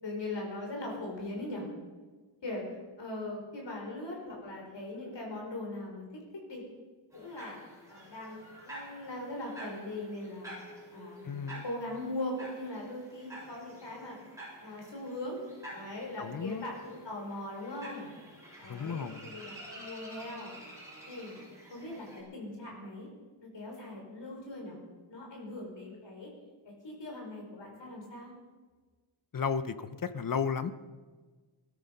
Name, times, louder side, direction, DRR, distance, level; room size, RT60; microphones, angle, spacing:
voice 1, 0.0-1.7 2.4-2.6 3.0-6.0 6.3-6.6 7.1-7.6 7.9-10.5 10.9-11.2 11.5-14.2 14.6-15.4 15.7-18.1 18.6-20.5 21.1-21.3 21.7-23.1 23.4-24.8 25.1-26.3 26.6-28.3, left 2 dB, 60° left, -1 dB, 5.1 m, -40 dB
sound 1, 7.1-22.2, right 1 dB, 5° right, 6.9 m, -49 dB
voice 2, 11.2-11.6 16.2-16.6 18.7-19.3 29.3-30.7, left 6 dB, 40° left, 12 dB, 0.8 m, -33 dB
20.0 x 13.0 x 5.4 m, 1.4 s
wide cardioid pair, 165°, 49 cm